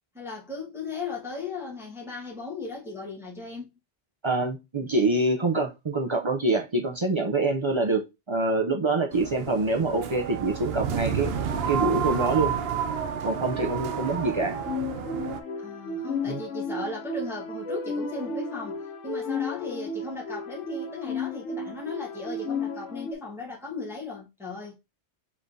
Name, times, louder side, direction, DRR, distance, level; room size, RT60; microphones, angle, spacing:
voice 1, 0.1-3.7 15.6-24.7, left 3 dB, ahead, 1.1 m, -37 dB
voice 2, 4.2-11.3 11.7-12.5 13.2-14.6 16.3-16.4, right 2 dB, 45° right, 0.4 m, -25 dB
sound 1, 9.1-15.4, right 7 dB, 65° right, 0.8 m, -30 dB
sound 2, 14.4-23.1, left 3 dB, 80° left, 1.1 m, -33 dB
5.4 x 3.2 x 2.6 m
omnidirectional pair, 1.2 m